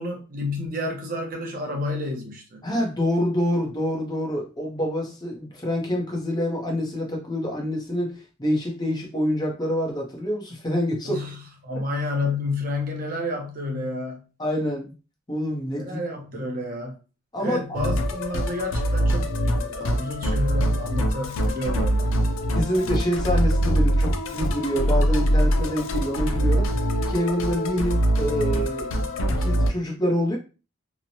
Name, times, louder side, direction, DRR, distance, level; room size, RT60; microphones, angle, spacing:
voice 1, 0.0-2.6 11.0-14.2 15.8-17.0 17.4-22.1, left 2 dB, 45° right, 0.6 m, -30 dB
voice 2, 2.6-11.2 14.4-14.9 15.3-16.0 16.3-16.4 17.3-17.6 22.5-26.7 27.1-28.9 29.3-30.4, equal, 20° left, 0.7 m, -26 dB
Musical instrument, 17.7-29.7, equal, 90° left, 0.5 m, -23 dB
2.9 x 2.1 x 2.6 m
head